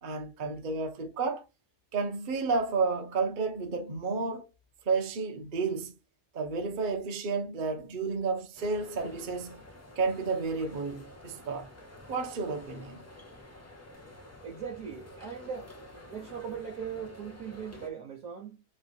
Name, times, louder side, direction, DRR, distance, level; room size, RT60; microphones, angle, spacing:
voice 1, 0.0-1.4 1.9-4.5 4.9-5.9 6.3-9.6 10.0-11.7 12.1-13.0, right 4 dB, 45° right, 0.7 m, -31 dB
sound 1, 8.6-17.9, left 1 dB, 20° left, 0.4 m, -50 dB
voice 2, 14.4-15.7 16.1-18.6, right 7 dB, 65° right, 1.3 m, -39 dB
3.2 x 3.2 x 4.1 m
omnidirectional pair, 1.7 m